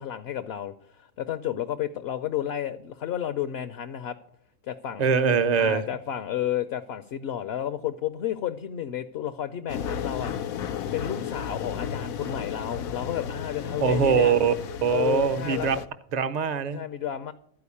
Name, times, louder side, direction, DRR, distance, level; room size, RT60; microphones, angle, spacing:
voice 1, 0.0-4.2 4.7-5.1 5.6-10.3 10.9-14.3 14.9-15.8 16.7-17.3, left 10 dB, 60° left, 0.7 m, -31 dB
voice 2, 5.0-5.8 13.8-14.5 14.8-15.8 16.1-16.8, right 6 dB, 45° right, 0.5 m, -22 dB
sound 1, 9.7-15.8, left 8 dB, 90° left, 1.1 m, -33 dB
13.0 x 4.8 x 8.4 m
omnidirectional pair, 1.4 m